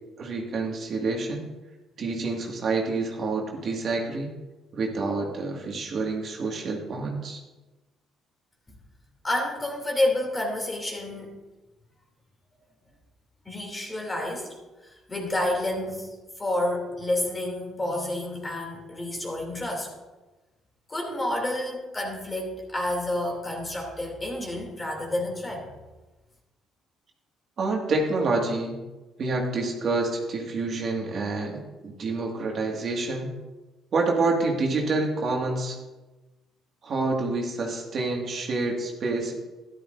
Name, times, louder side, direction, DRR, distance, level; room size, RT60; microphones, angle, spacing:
voice 1, 0.2-1.5 2.0-4.3 4.7-7.4 27.6-28.8 29.2-33.3 33.9-35.8 36.8-39.3, right 3 dB, 50° right, 0 dB, 1.9 m, -28 dB
voice 2, 9.2-11.3 13.4-14.5 14.8-16.1 16.4-19.9 20.9-25.7, left 1 dB, 20° left, 1 dB, 2.8 m, -29 dB
12.5 x 11.5 x 2.6 m, 1.1 s
cardioid pair, 85°, 0 cm